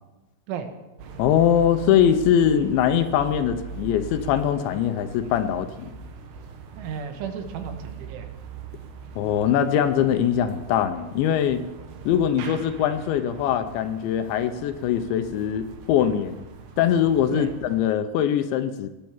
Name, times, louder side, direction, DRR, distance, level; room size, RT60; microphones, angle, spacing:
sound 1, 1.0-17.8, right 5 dB, 65° right, 3.3 m, -41 dB
voice 1, 1.2-5.9 9.2-11.6 12.1-16.4 16.8-18.9, left 9 dB, 80° left, 10 dB, 3.1 m, -22 dB
voice 2, 6.7-8.3 17.3-17.5, right 7 dB, 80° right, 7 dB, 3.9 m, -34 dB
18.0 x 10.5 x 7.3 m, 1.0 s
omnidirectional pair, 5.4 m